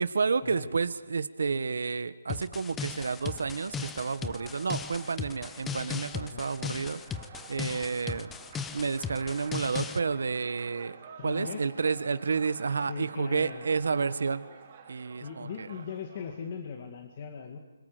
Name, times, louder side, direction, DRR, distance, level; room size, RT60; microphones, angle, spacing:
voice 1, 0.0-7.2 7.5-8.3 8.7-11.0 11.2-14.4 14.9-15.7, right 5 dB, 75° right, 13 dB, 1.4 m, -30 dB
sound 1, 2.3-10.0, left 6 dB, 10° left, 0.7 m, -37 dB
sound 2, 2.8-16.6, right 6 dB, 35° right, 4.5 m, -51 dB
voice 2, 11.2-11.7 12.8-13.6 15.2-17.6, left 6 dB, 35° left, 3 dB, 2.1 m, -39 dB
27.0 x 25.5 x 5.1 m, 1.2 s
hypercardioid pair, 165°, 0 cm